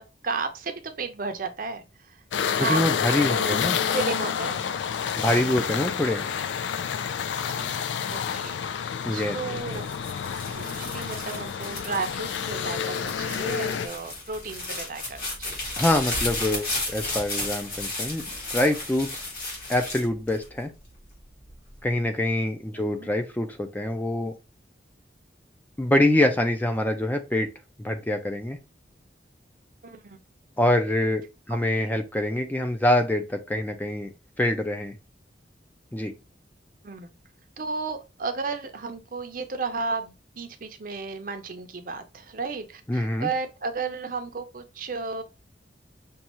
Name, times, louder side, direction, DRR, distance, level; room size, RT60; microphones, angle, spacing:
voice 1, 0.0-2.2 2.6-2.8 3.1-3.7 3.9-4.8 6.3-6.4 7.5-9.9 10.5-15.8 22.7-23.1 29.8-30.2 31.5-31.8 36.8-37.1 37.6-45.2, right 4 dB, 50° right, 0.6 m, -34 dB
sound 1, 2.3-13.9, left 7 dB, 80° left, 0.3 m, -29 dB
voice 2, 2.6-3.8 5.2-6.3 9.1-9.4 15.8-18.2 18.5-19.2 19.7-20.7 21.8-24.3 25.8-27.5 27.8-28.6 30.6-34.1 34.4-34.9 35.9-36.1 42.9-43.3, left 1 dB, 10° left, 0.3 m, -25 dB
sound 2, 9.6-20.9 21.5-22.0, left 2 dB, 55° left, 1.6 m, -34 dB
5.3 x 2.3 x 3.0 m
head